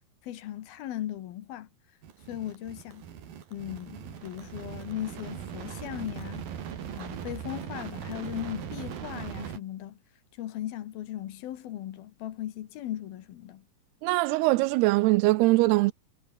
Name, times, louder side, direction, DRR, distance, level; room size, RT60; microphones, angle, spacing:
voice 1, 0.2-1.7 2.3-3.0 3.5-6.5 7.0-10.0 10.4-13.6, left 12 dB, 70° left, 3.1 m, -37 dB
sound 1, 2.0-9.6, right 8 dB, 65° right, 4.3 m, -40 dB
voice 2, 14.0-15.9, right 21 dB, 80° right, 2.5 m, -22 dB
omnidirectional pair, 4.7 m